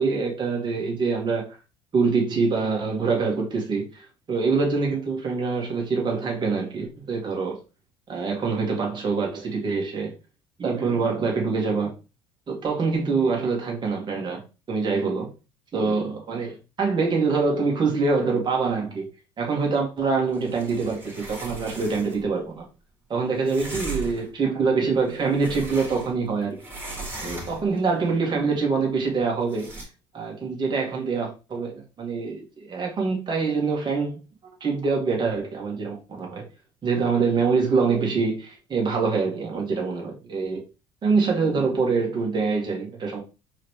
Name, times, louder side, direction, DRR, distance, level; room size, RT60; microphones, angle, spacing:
voice 1, 0.0-1.5 1.9-7.6 8.1-10.1 10.6-11.9 12.5-15.3 15.7-19.1 19.4-22.7 23.1-26.6 27.2-29.7 30.1-34.2 34.6-36.4 36.8-40.7 41.0-43.2, right 4 dB, 35° right, 2.2 m, -25 dB
sound 1, 20.3-22.3 23.4-24.3 24.9-26.3 26.6-27.8 29.5-29.8, right 2 dB, 15° right, 2.8 m, -37 dB
4.7 x 3.5 x 3.2 m
supercardioid pair, 80°, 13 cm